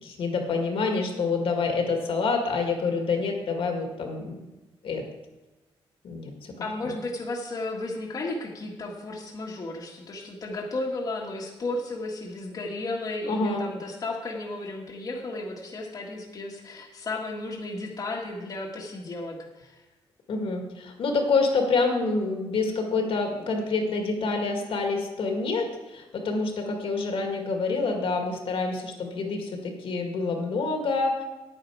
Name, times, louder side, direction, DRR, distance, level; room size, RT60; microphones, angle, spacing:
voice 1, 0.0-4.4 4.8-5.0 6.0-6.5 13.3-13.6 20.3-31.2, left 4 dB, 65° left, 2 dB, 2.0 m, -27 dB
voice 2, 6.6-19.8, left 2 dB, 40° left, -2 dB, 1.7 m, -34 dB
9.9 x 9.4 x 4.8 m, 1.1 s
cardioid pair, 130°, 10 cm